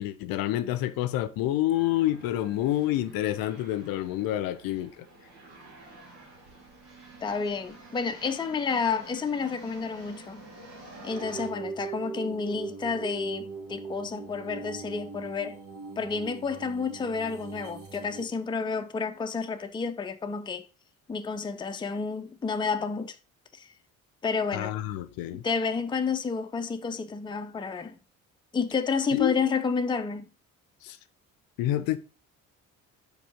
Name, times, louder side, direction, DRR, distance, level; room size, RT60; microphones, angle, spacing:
voice 1, 0.0-5.1 24.5-25.4 29.1-29.4 30.8-31.0 31.6-32.0, left 13 dB, 55° left, 0.6 m, -28 dB
sound 1, 1.3-11.5, right 2 dB, 75° right, 2.0 m, -49 dB
voice 2, 7.2-10.4 11.0-15.6 16.0-20.7 21.1-23.2 23.5-23.7 24.2-24.7 25.3-28.0 28.5-30.3, left 5 dB, 10° left, 0.5 m, -30 dB
sound 2, 11.1-18.2, right 4 dB, 50° right, 1.9 m, -40 dB
5.1 x 4.7 x 4.9 m
figure-of-eight pair, 50°, 42 cm